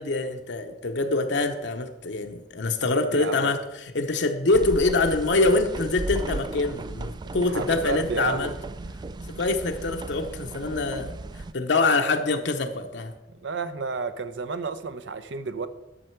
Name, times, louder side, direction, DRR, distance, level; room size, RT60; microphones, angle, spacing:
voice 1, 0.0-8.5 9.4-11.1 11.5-13.1, left 3 dB, 70° left, 0.8 m, -25 dB
voice 2, 2.8-3.5 7.5-8.5 13.3-15.7, right 4 dB, 85° right, 0.7 m, -31 dB
sound 1, 4.5-11.5, right 2 dB, 25° right, 0.3 m, -36 dB
11.0 x 6.6 x 4.5 m
head